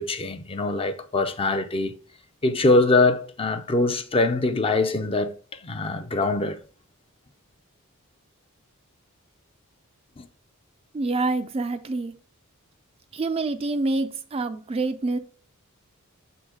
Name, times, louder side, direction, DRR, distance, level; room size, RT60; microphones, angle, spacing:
voice 1, 0.0-1.9 2.4-5.3 5.6-6.6 10.2-10.3, left 2 dB, 25° left, 0.5 m, -23 dB
voice 2, 10.9-12.1 13.1-15.2, right 3 dB, 25° right, 0.4 m, -26 dB
6.7 x 3.9 x 4.8 m
head